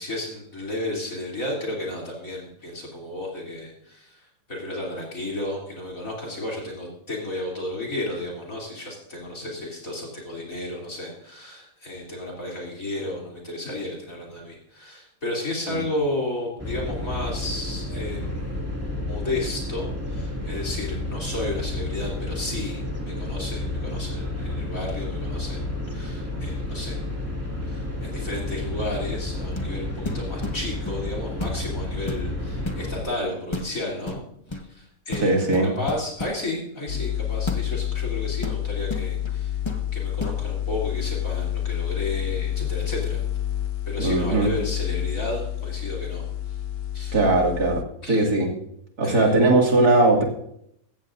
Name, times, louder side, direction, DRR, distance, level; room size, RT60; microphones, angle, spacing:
voice 1, 0.0-18.5 19.1-27.1 27.6-34.2 34.5-35.4 35.8-39.6 39.9-43.2 43.9-46.2 46.9-47.2 48.0-48.2 49.0-49.4, left 1 dB, 45° left, -1 dB, 3.5 m, -33 dB
sound 1, 16.6-33.0, left 2 dB, 10° right, 2.1 m, -31 dB
sound 2, 29.5-29.8 30.1-31.0 31.4-31.7 32.0-32.8 33.5-33.7 34.1-34.7 35.1-36.4 37.5-37.7 38.4-39.4 39.7-39.8 40.2-40.4, left 2 dB, 20° left, 1.0 m, -33 dB
voice 2, 35.2-35.7 44.0-44.5 47.1-47.8 48.1-48.5 49.0-50.2, right 2 dB, 55° right, 1 dB, 2.8 m, -19 dB
sound 3, 36.9-47.8, left 11 dB, 65° left, 1.1 m, -29 dB
15.0 x 15.0 x 2.6 m, 0.72 s
omnidirectional pair, 1.9 m